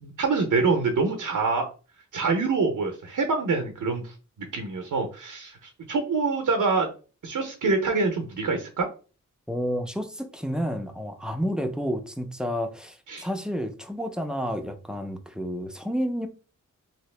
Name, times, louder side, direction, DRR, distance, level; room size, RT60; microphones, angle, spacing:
voice 1, 0.0-1.6 2.1-4.1 4.5-6.9 7.2-8.9 13.1-13.3, right 4 dB, 85° right, 0.6 m, -25 dB
voice 2, 9.5-16.3, equal, 5° right, 0.4 m, -30 dB
2.9 x 2.7 x 3.2 m
wide cardioid pair, 125°, 31 cm